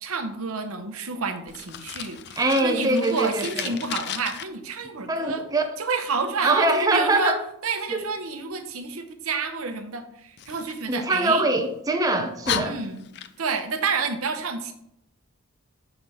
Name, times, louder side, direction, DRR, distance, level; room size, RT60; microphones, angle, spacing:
voice 1, 0.0-5.4 5.8-7.4 7.6-11.4 12.6-13.0 13.4-14.7, right 4 dB, 85° right, 7 dB, 0.8 m, -29 dB
Fire, 1.5-4.4 10.4-11.6 12.1-12.2 12.4-13.6, left 9 dB, 55° left, 0.4 m, -34 dB
voice 2, 2.4-3.8 5.1-5.6 6.4-7.4 7.9-8.0 10.9-12.8, right 2 dB, 15° right, 4 dB, 0.6 m, -23 dB
6.0 x 3.4 x 5.4 m, 0.75 s
head